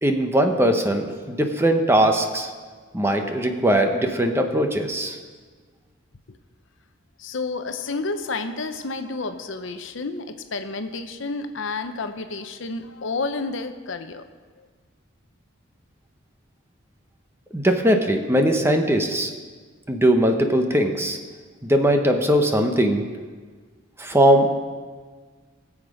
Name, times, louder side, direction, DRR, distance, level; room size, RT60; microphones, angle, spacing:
voice 1, 0.0-2.5 2.9-5.2 17.5-19.3 19.9-21.2 21.6-23.0 24.0-24.5, right 1 dB, 10° right, 4 dB, 1.0 m, -20 dB
voice 2, 7.2-14.3 14.6-14.7, left 3 dB, 65° left, 8 dB, 0.8 m, -30 dB
20.5 x 7.3 x 5.0 m, 1.5 s
head